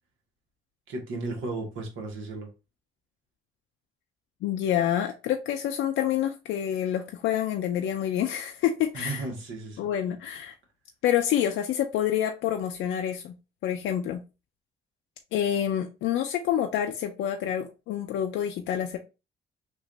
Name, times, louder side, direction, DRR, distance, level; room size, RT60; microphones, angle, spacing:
voice 1, 0.9-2.5 8.9-9.9, right 3 dB, 80° right, 1.3 m, -34 dB
voice 2, 4.4-9.2 9.8-10.5 11.0-13.3 13.6-14.2 15.3-19.0, left 10 dB, 85° left, 0.5 m, -27 dB
3.1 x 2.5 x 3.8 m
cardioid pair, 90°, 20 cm